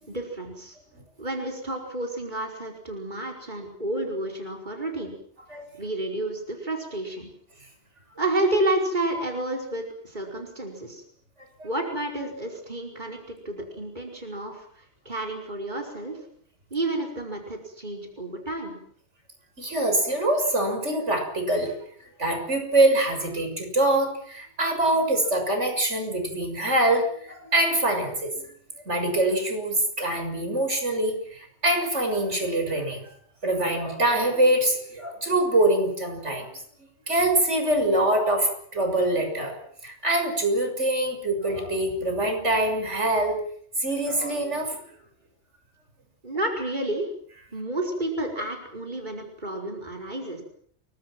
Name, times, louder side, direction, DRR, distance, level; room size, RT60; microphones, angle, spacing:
voice 1, 0.1-0.8 1.2-5.2 5.8-7.3 8.2-11.0 11.6-16.2 16.7-18.8 46.2-47.1 47.5-50.4, right 1 dB, 40° right, 1 dB, 5.1 m, -30 dB
voice 2, 19.6-21.7 22.2-28.5 28.9-33.0 33.4-36.5 37.1-39.6 39.8-43.4 43.8-44.8, right 1 dB, 85° right, 4 dB, 6.9 m, -24 dB
29.5 x 23.5 x 6.2 m, 0.62 s
omnidirectional pair, 1.2 m